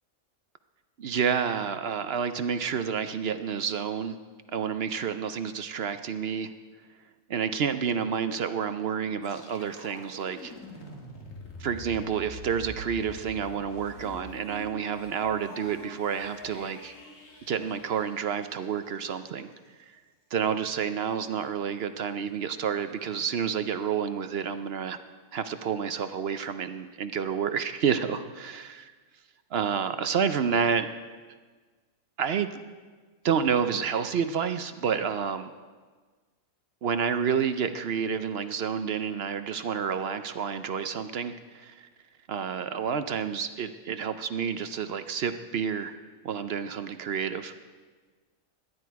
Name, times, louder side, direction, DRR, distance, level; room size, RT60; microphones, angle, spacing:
voice 1, 1.0-4.2 4.5-6.5 7.3-10.5 11.6-16.9 17.5-19.5 20.3-25.0 25.3-28.7 29.5-30.9 32.2-32.6 33.2-35.5 36.8-41.9 42.3-46.0 46.2-47.5, right 7 dB, 60° right, 10 dB, 0.7 m, -29 dB
sound 1, 9.2-19.1, left 1 dB, 70° left, 2.4 m, -45 dB
17.5 x 11.5 x 4.7 m, 1.4 s
omnidirectional pair, 1.4 m